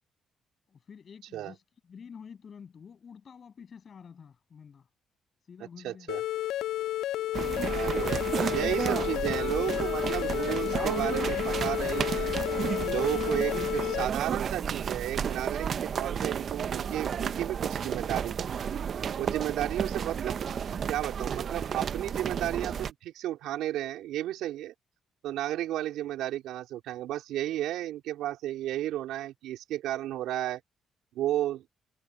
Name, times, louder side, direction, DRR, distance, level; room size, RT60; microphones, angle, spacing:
voice 1, 0.7-4.9 5.4-6.1 6.8-7.0 7.8-8.3, left 6 dB, 50° left, 7.9 m, -49 dB
voice 2, 5.6-6.2 7.7-8.2 8.5-12.3 12.8-18.5 19.2-20.4 20.9-24.7 25.2-30.6 31.1-31.7, right 13 dB, 90° right, 3.9 m, -33 dB
sound 1, 6.1-14.1, left 14 dB, 85° left, 0.3 m, -31 dB
sound 2, 7.3-22.9, right 7 dB, 55° right, 0.7 m, -32 dB
cardioid pair, 90°, 0 cm